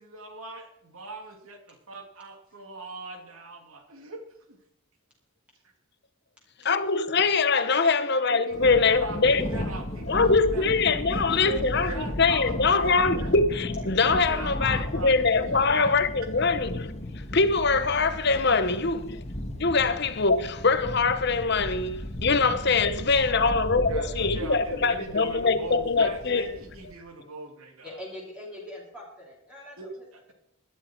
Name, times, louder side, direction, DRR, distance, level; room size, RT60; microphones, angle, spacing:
voice 1, 0.0-4.2 4.5-4.6 7.8-7.9 8.5-10.7 11.1-13.3 14.3-16.0 23.3-28.0 29.8-30.3, right 2 dB, 75° right, 2.6 m, -41 dB
voice 2, 6.6-9.5 10.1-16.9 17.3-19.2 19.6-26.5, left 4 dB, 50° left, 0.9 m, -23 dB
Thunder, 8.5-26.9, left 1 dB, 30° left, 1.3 m, -35 dB
voice 3, 27.8-29.8, left 1 dB, 5° right, 2.8 m, -42 dB
17.0 x 11.0 x 4.5 m
head